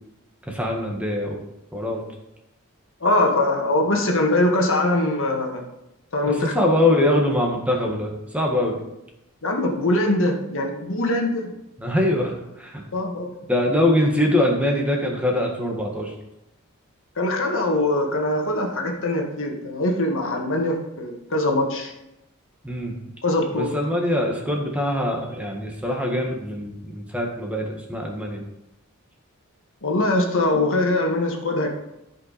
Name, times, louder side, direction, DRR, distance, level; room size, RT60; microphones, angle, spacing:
voice 1, 0.5-1.4 1.7-2.0 6.3-8.8 11.8-12.8 13.5-16.1 22.6-22.9 23.5-28.4, left 1 dB, 5° right, 0 dB, 1.5 m, -23 dB
voice 2, 3.0-5.6 6.1-6.8 7.0-7.1 9.4-11.5 12.9-13.3 17.2-21.9 23.2-23.8 29.8-31.7, left 1 dB, 60° left, 2 dB, 1.7 m, -22 dB
14.0 x 5.7 x 4.1 m, 0.88 s
head